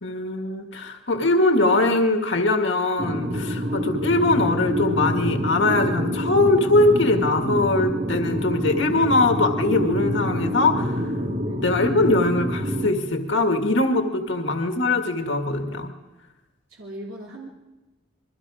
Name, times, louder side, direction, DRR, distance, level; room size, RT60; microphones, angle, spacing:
voice 1, 0.0-11.0 11.6-15.9, left 2 dB, 60° left, 4 dB, 1.9 m, -21 dB
sound 1, 3.0-12.9, equal, 40° right, 4.3 m, -27 dB
voice 2, 16.7-17.5, right 1 dB, 80° right, -3 dB, 3.3 m, -39 dB
27.5 x 23.0 x 5.0 m, 1.1 s
head